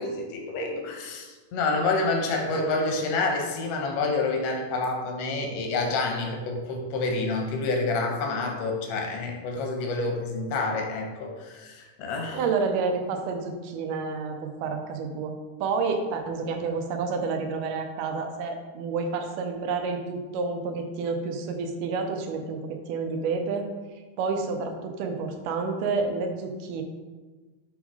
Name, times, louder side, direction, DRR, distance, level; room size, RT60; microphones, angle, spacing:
voice 1, 0.0-12.4, left 3 dB, 65° left, 2 dB, 1.6 m, -28 dB
voice 2, 12.3-15.3 15.6-23.7 24.2-26.8, right 4 dB, 80° right, 4 dB, 2.3 m, -29 dB
7.0 x 3.7 x 4.7 m, 1.3 s
omnidirectional pair, 3.7 m